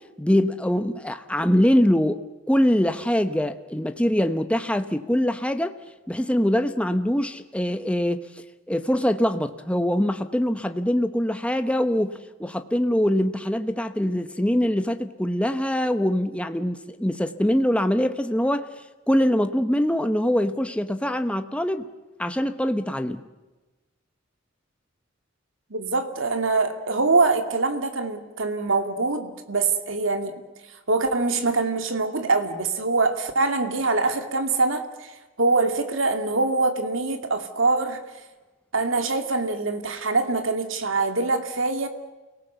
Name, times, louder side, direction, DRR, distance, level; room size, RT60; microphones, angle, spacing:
voice 1, 0.2-2.2 2.5-5.8 6.1-8.3 8.7-18.7 19.1-21.9 22.2-23.2, equal, 5° left, 8 dB, 0.9 m, -23 dB
voice 2, 25.7-30.4 30.9-38.0 38.7-41.9, right 3 dB, 90° right, 7 dB, 2.6 m, -24 dB
29.0 x 18.5 x 8.1 m, 1.2 s
head